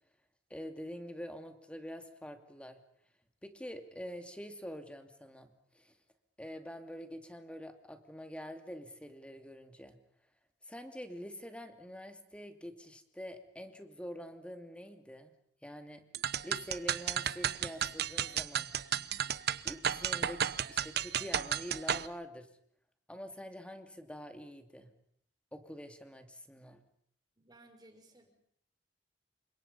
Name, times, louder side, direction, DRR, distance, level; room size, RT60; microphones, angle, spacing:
voice 1, 0.5-2.8 3.4-5.9 6.4-10.0 10.6-15.3 15.6-16.0 16.4-18.7 19.6-20.4 20.7-22.5 23.1-24.9 25.5-26.8, equal, 5° left, 6 dB, 2.6 m, -46 dB
sound 1, 16.1-22.1, right 9 dB, 65° right, 0.9 m, -33 dB
voice 2, 27.4-28.3, right 1 dB, 25° right, 4 dB, 5.6 m, -59 dB
29.0 x 25.0 x 5.5 m, 0.69 s
head